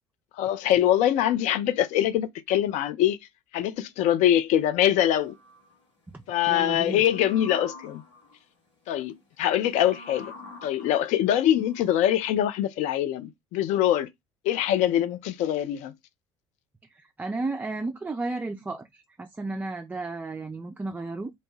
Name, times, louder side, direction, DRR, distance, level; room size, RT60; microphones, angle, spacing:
voice 1, 0.4-3.2 3.5-5.4 6.3-8.0 8.9-10.3 10.6-14.1 14.4-15.9, left 11 dB, 55° left, 0.5 m, -23 dB
sound 1, 5.0-5.7 6.9-8.4 9.6-12.1, left 3 dB, 80° left, 1.4 m, -45 dB
voice 2, 6.5-7.0 16.9-21.3, right 3 dB, 10° right, 0.4 m, -33 dB
2.7 x 2.1 x 3.1 m
figure-of-eight pair, 60°, 15 cm